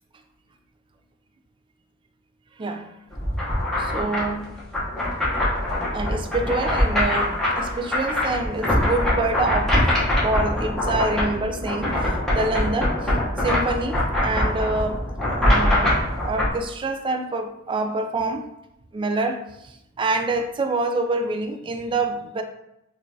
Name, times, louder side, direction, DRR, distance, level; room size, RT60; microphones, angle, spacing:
voice 1, 2.6-2.9 3.8-4.5 5.9-9.8 10.2-13.1 13.4-16.0 16.2-18.5 18.9-22.4, right 2 dB, 25° right, 6 dB, 0.3 m, -26 dB
sound 1, 3.1-16.5, left 1 dB, 5° left, 0.8 m, -23 dB
4.8 x 2.3 x 2.7 m, 0.85 s
head